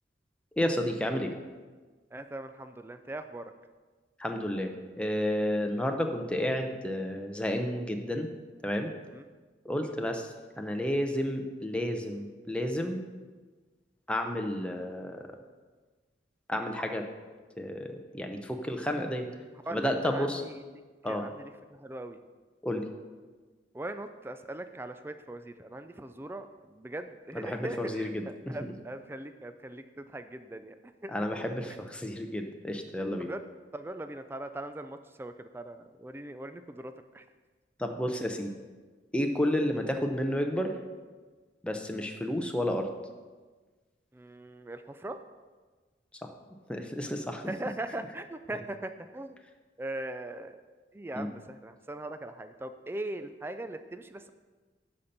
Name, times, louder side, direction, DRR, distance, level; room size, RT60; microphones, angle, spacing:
voice 1, 0.6-1.3 4.2-8.3 8.6-8.9 9.6-13.0 14.1-15.3 16.5-17.1 17.6-19.3 19.7-20.4 21.0-21.2 22.6-22.8 27.3-28.5 31.1-33.3 37.8-38.5 39.1-40.7 41.6-42.9 46.7-47.4 51.1-51.3, left 1 dB, 5° left, 3 dB, 0.7 m, -31 dB
voice 2, 2.1-3.5 9.1-9.3 9.8-9.9 19.7-20.6 21.1-22.2 23.7-30.8 31.0-31.1 33.2-33.4 33.7-37.2 44.1-45.2 47.5-49.4 49.8-50.6 50.9-54.3, right 1 dB, 15° right, 9 dB, 0.3 m, -40 dB
10.5 x 4.3 x 6.7 m, 1.4 s
head